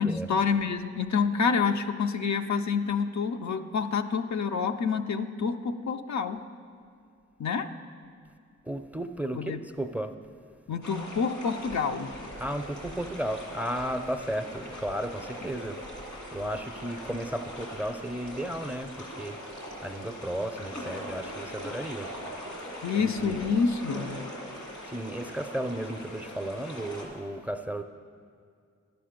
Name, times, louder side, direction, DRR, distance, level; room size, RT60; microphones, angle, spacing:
voice 1, 0.0-6.4 7.4-7.7 9.3-9.6 10.7-12.1 22.8-24.2, left 5 dB, 70° left, 7 dB, 0.5 m, -28 dB
voice 2, 8.7-10.1 12.4-19.4 19.8-22.1 23.0-23.4 24.8-27.8, right 1 dB, 5° right, 8 dB, 0.5 m, -34 dB
sound 1, 10.8-27.1, equal, 90° left, 2.0 m, -41 dB
11.0 x 6.9 x 5.1 m, 2.3 s
cardioid pair, 40°, 29 cm